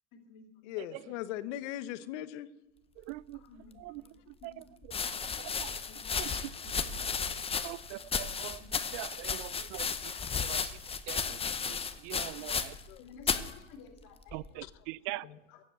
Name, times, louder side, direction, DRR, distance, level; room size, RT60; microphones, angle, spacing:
voice 1, 0.1-1.1 3.3-4.0 4.4-4.6 5.1-5.5 5.7-7.7 8.1-9.0 12.4-12.5 13.0-14.4 15.0-15.6, left 5 dB, 50° left, 2.7 m, -56 dB
voice 2, 0.6-2.5 12.9-13.0, left 13 dB, 65° left, 1.0 m, -38 dB
voice 3, 3.0-3.5 3.8-4.6 5.4-5.8 6.2-6.4 7.6-10.1 10.4-10.8 11.1-12.7 14.3-15.2, right 19 dB, 50° right, 0.5 m, -43 dB
sound 1, 3.8-3.9 4.8-12.9 13.2-13.5 14.3-14.7, left 6 dB, 15° left, 0.8 m, -34 dB
sound 2, 6.6-8.5, right 4 dB, 35° right, 2.6 m, -52 dB
15.5 x 7.5 x 8.2 m
supercardioid pair, 120°, 38 cm